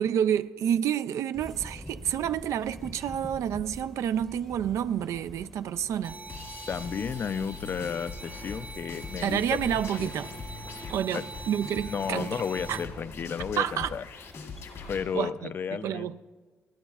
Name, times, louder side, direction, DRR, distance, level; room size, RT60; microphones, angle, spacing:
voice 1, 0.0-6.2 9.2-10.3 10.9-12.3 12.7-12.8 13.6-13.9 15.1-16.2, right 9 dB, 85° right, 0.4 m, -29 dB
sound 1, 1.3-15.3, equal, 5° left, 0.7 m, -47 dB
sound 2, 6.0-12.8, right 3 dB, 30° right, 0.5 m, -44 dB
sound 3, 6.3-15.0, left 4 dB, 80° left, 2.0 m, -42 dB
voice 2, 6.7-10.1 11.1-11.2 11.9-14.0 14.9-16.2, left 6 dB, 45° left, 0.4 m, -33 dB
28.0 x 11.0 x 2.4 m
cardioid pair, 130°, 5 cm